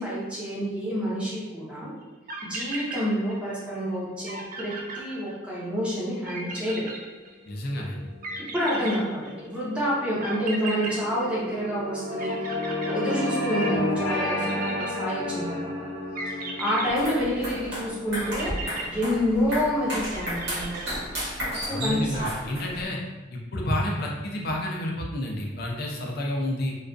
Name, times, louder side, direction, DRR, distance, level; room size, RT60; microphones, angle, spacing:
voice 1, 0.0-1.9 2.4-6.9 8.5-12.5 12.8-15.9 16.3-18.5 18.9-21.0 21.7-22.2, equal, 5° right, -8 dB, 0.6 m, -28 dB
sound 1, 2.0-2.1 2.3-3.6 3.9-4.0 4.3-5.7 6.2-7.7 8.2-9.6 10.2-11.9 12.2-13.6 14.2-15.4 16.2-17.6 18.1-19.7 20.1-21.3, right 2 dB, 45° right, 0.3 m, -37 dB
voice 2, 7.5-8.0 21.7-23.0 23.3-26.8, left 1 dB, 50° left, -1 dB, 0.4 m, -30 dB
sound 2, 7.9-20.5, left 1 dB, 30° left, 0.8 m, -32 dB
sound 3, 16.9-22.9, equal, 60° right, 0.9 m, -33 dB
2.3 x 2.3 x 2.5 m, 1.2 s
head